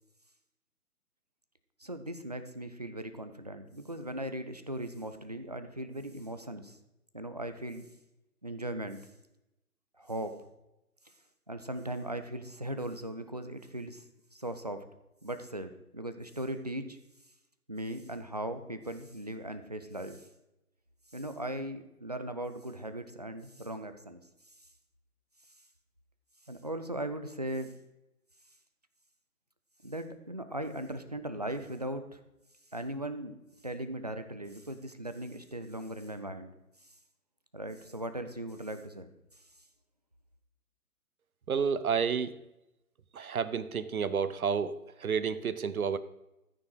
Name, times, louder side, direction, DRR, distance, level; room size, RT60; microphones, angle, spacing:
voice 1, 1.8-6.8 7.1-7.9 8.4-9.1 10.0-10.4 11.5-14.0 14.3-14.9 15.2-17.0 17.7-20.3 21.1-24.2 26.5-27.7 29.8-32.2 32.7-33.4 33.6-36.5 37.5-39.1, right 1 dB, 30° right, 9 dB, 0.4 m, -38 dB
voice 2, 41.5-42.3 43.1-46.0, right 6 dB, 70° right, 15 dB, 0.8 m, -30 dB
13.5 x 6.2 x 4.7 m, 0.91 s
figure-of-eight pair, 140°, 45 cm